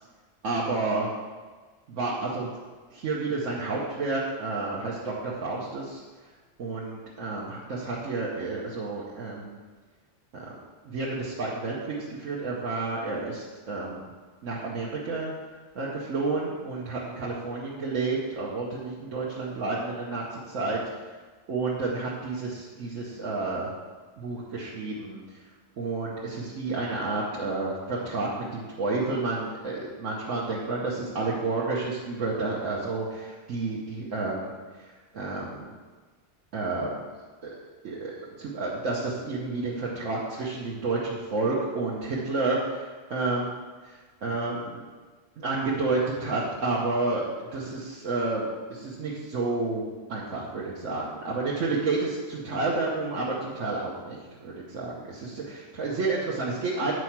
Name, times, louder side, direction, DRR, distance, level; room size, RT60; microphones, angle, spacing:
voice 1, 0.4-1.1 1.9-2.5 2.9-6.0 6.6-9.6 10.3-10.5 10.8-14.1 14.4-15.3 15.7-20.8 21.5-23.7 24.2-25.2 25.8-34.5 34.8-35.7 36.5-37.0 37.4-37.5 37.8-38.1 38.4-43.5 43.8-44.8 45.4-49.8 50.1-56.9, right 3 dB, 85° right, -5 dB, 1.4 m, -30 dB
8.3 x 4.8 x 5.9 m, 1.4 s
omnidirectional pair, 1.3 m